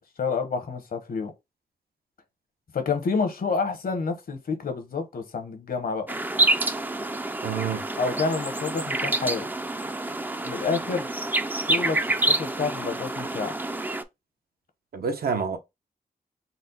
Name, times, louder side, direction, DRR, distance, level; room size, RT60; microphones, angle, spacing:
voice 1, 0.2-1.3 2.7-6.1 8.0-9.5 10.4-11.1 11.6-12.0 12.3-13.5, left 4 dB, 65° left, 0.9 m, -28 dB
sound 1, 6.1-14.0, right 2 dB, 10° right, 0.3 m, -27 dB
voice 2, 7.4-7.9 14.9-15.6, right 6 dB, 75° right, 0.8 m, -28 dB
4.1 x 2.1 x 3.9 m
wide cardioid pair, 125°, 16 cm